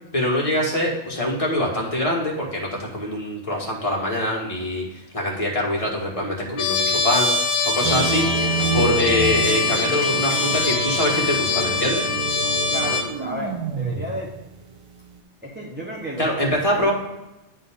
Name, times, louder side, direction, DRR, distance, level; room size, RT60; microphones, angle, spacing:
voice 1, 0.1-12.0 16.2-16.9, left 1 dB, 30° left, -3 dB, 1.8 m, -24 dB
Trumpet, 6.6-13.1, left 4 dB, 70° left, 1.0 m, -23 dB
sound 1, 7.8-15.2, right 5 dB, 50° right, 0.4 m, -28 dB
voice 2, 12.7-14.3 15.4-16.3 16.8-16.9, right 1 dB, 10° right, -6 dB, 1.1 m, -32 dB
9.9 x 4.0 x 3.6 m, 0.98 s
omnidirectional pair, 1.2 m